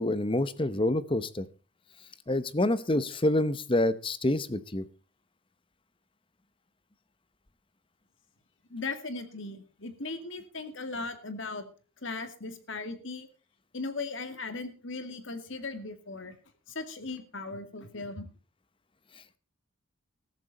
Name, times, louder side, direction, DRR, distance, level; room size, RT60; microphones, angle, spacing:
voice 1, 0.0-1.4 2.3-4.8, left 1 dB, 25° left, 15 dB, 0.8 m, -27 dB
voice 2, 8.7-11.7 12.0-13.3 13.7-16.4 16.7-18.3, left 3 dB, 60° left, 9 dB, 2.2 m, -38 dB
14.5 x 14.0 x 4.1 m, 0.35 s
head